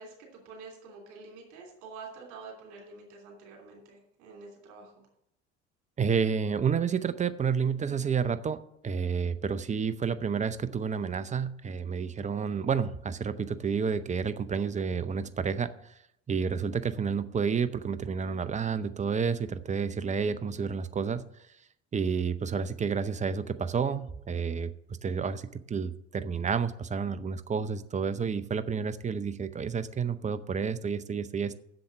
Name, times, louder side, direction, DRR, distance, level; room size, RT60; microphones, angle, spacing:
voice 1, 0.0-5.1, right 4 dB, 60° right, 0 dB, 3.1 m, -47 dB
voice 2, 6.0-8.6 8.8-15.9 16.3-21.2 21.9-24.7 25.0-31.5, right 6 dB, 20° right, 13 dB, 0.6 m, -30 dB
7.8 x 7.1 x 7.6 m, 0.76 s
figure-of-eight pair, 65°, 34 cm